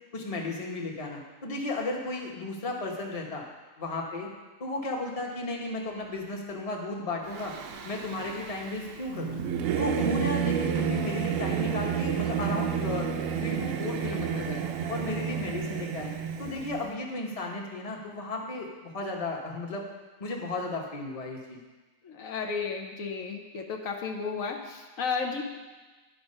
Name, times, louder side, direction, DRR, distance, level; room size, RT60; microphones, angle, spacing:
voice 1, 0.1-3.4 3.8-4.3 4.6-7.5 7.8-9.4 9.8-13.1 13.4-14.6 14.9-16.1 16.4-19.9 20.2-21.6, left 2 dB, 30° left, 0 dB, 1.0 m, -34 dB
Singing / Musical instrument, 7.3-16.8, right 7 dB, 75° right, 1.0 m, -31 dB
voice 2, 22.0-25.4, left 5 dB, 75° left, 2 dB, 1.2 m, -33 dB
10.5 x 4.6 x 5.4 m, 1.3 s
omnidirectional pair, 1.4 m